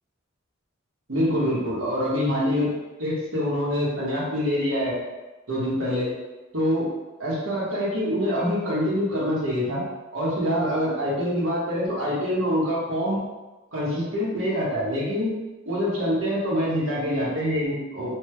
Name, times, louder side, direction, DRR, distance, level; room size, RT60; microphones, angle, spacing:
voice 1, 1.1-2.7 3.0-5.0 5.5-6.1 6.5-6.9 7.2-9.8 10.1-13.2 13.7-15.3 15.6-18.2, equal, 70° right, -6 dB, 1.1 m, -25 dB
3.2 x 2.1 x 3.2 m, 1.2 s
head